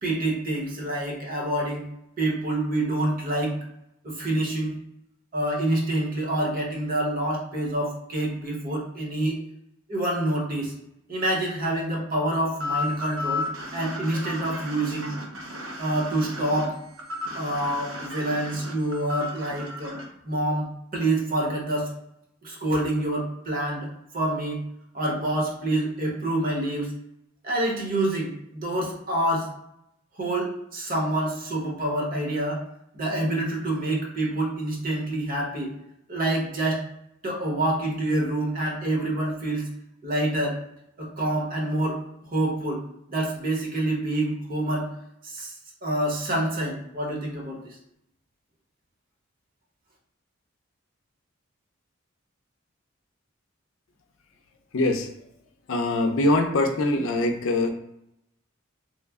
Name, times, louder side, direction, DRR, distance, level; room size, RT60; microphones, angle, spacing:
voice 1, 0.0-1.9 2.2-3.6 4.0-4.8 5.3-9.4 9.9-10.7 11.1-13.5 13.7-15.1 15.8-16.8 17.3-20.0 20.2-20.6 20.9-21.9 22.4-23.9 24.1-24.6 24.9-26.9 27.4-29.5 30.2-32.6 32.9-35.7 36.1-36.8 37.2-39.7 40.0-40.6 41.0-42.0 42.3-42.8 43.1-44.9 45.2-47.8, right 1 dB, 45° right, -2 dB, 0.9 m, -27 dB
sound 1, 12.6-20.0, left 2 dB, 70° right, 0.7 m, -34 dB
voice 2, 54.7-55.1 55.7-57.7, left 2 dB, 85° left, 5 dB, 0.5 m, -23 dB
3.1 x 2.1 x 3.5 m, 0.81 s
head